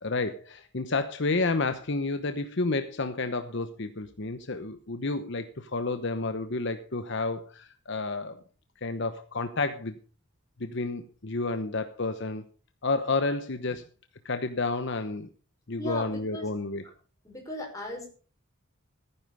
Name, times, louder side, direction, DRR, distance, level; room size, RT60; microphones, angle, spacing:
voice 1, 0.0-8.4 8.8-10.0 10.6-12.4 12.8-13.8 14.2-15.3 15.7-16.8, left 3 dB, 55° left, 9 dB, 1.0 m, -30 dB
voice 2, 15.8-16.5 17.2-18.1, left 1 dB, 15° left, 0 dB, 5.5 m, -37 dB
14.5 x 10.0 x 5.6 m, 0.39 s
head